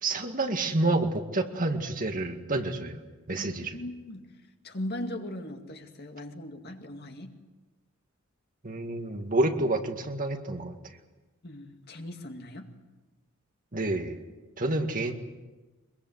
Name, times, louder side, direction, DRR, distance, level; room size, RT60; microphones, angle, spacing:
voice 1, 0.0-3.0 3.3-3.8 8.6-10.8 13.7-14.2 14.6-15.1, right 2 dB, 40° right, 5 dB, 1.9 m, -28 dB
voice 2, 3.4-4.3 4.6-7.4 11.4-12.7, left 1 dB, 50° left, 4 dB, 2.3 m, -39 dB
23.5 x 22.5 x 8.0 m, 1.2 s
head